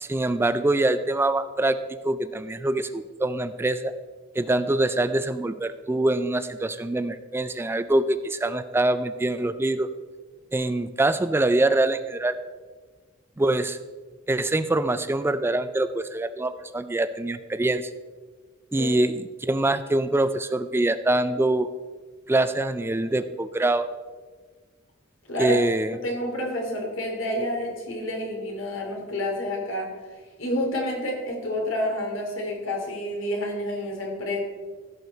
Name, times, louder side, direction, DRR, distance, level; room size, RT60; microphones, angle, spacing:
voice 1, 0.0-3.9 4.4-9.9 10.5-12.4 13.4-13.8 14.3-17.9 18.7-21.7 22.3-23.9 25.4-26.0, right 2 dB, 10° right, 12 dB, 0.3 m, -24 dB
voice 2, 26.0-29.9 30.4-34.4, equal, 85° left, 0 dB, 2.8 m, -29 dB
15.5 x 6.7 x 4.0 m, 1.4 s
head